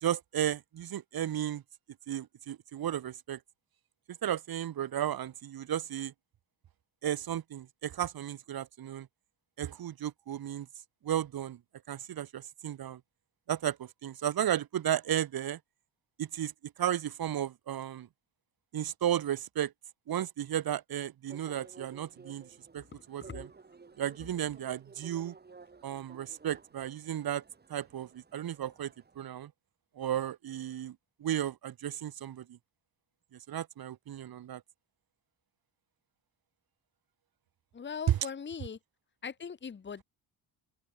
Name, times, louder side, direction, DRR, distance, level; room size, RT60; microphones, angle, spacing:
voice 1, 0.0-1.6 2.1-3.4 4.2-6.1 7.0-9.1 9.6-10.7 11.0-11.6 11.9-13.0 13.5-15.6 16.2-16.5 16.8-18.1 18.7-19.7 20.1-22.5 22.7-23.5 24.0-25.4 25.8-27.4 27.7-29.5 30.0-31.0 31.2-32.6 33.5-34.6 38.1-38.2, right 11 dB, 50° right, 1.9 m, -34 dB
sound 1, 21.3-29.2, right 4 dB, 20° right, 5.9 m, -54 dB
voice 2, 37.7-38.8 39.2-40.0, left 6 dB, 25° left, 1.7 m, -40 dB
open air
cardioid pair, 165°, 45 cm